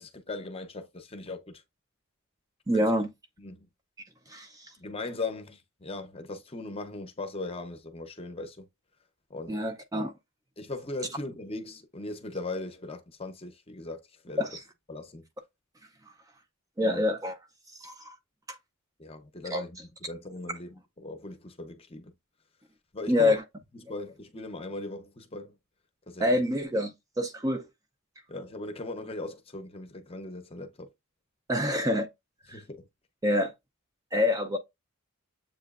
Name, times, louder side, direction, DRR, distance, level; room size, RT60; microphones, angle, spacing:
voice 1, 0.0-1.6 2.7-2.9 3.4-3.7 4.8-8.7 9.3-9.6 10.6-14.5 14.9-15.2 16.8-17.0 19.0-19.8 20.1-22.1 22.9-23.4 23.8-25.6 26.1-26.3 28.3-30.9 32.5-32.9, left 2 dB, 25° left, 0.7 m, -39 dB
voice 2, 2.7-3.1 4.3-4.7 9.5-10.1 14.4-14.6 16.8-17.4 17.8-18.2 18.5-18.6 19.5-19.6 23.1-23.4 26.2-27.7 31.5-32.1 32.5-32.6 33.2-33.5 34.1-34.6, left 1 dB, 15° right, 0.4 m, -26 dB
7.3 x 3.0 x 2.4 m
head